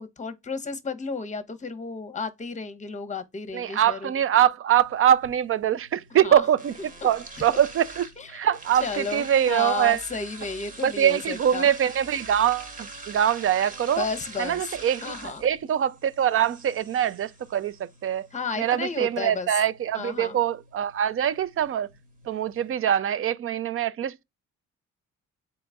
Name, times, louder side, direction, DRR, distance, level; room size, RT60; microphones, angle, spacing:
voice 1, 0.0-4.1 6.2-6.4 7.0-7.1 7.5-7.6 8.2-11.7 14.0-14.7 15.0-15.4 18.3-19.5 19.9-20.4, left 4 dB, 25° left, 0.8 m, -33 dB
voice 2, 3.5-6.7 7.0-10.0 10.8-14.1 14.4-18.3 18.6-21.9 22.3-24.2, right 10 dB, 45° right, 0.5 m, -23 dB
sound 1, 4.7-22.7, right 2 dB, 25° right, 1.3 m, -45 dB
3.9 x 3.0 x 3.4 m
cardioid pair, 90°, 30 cm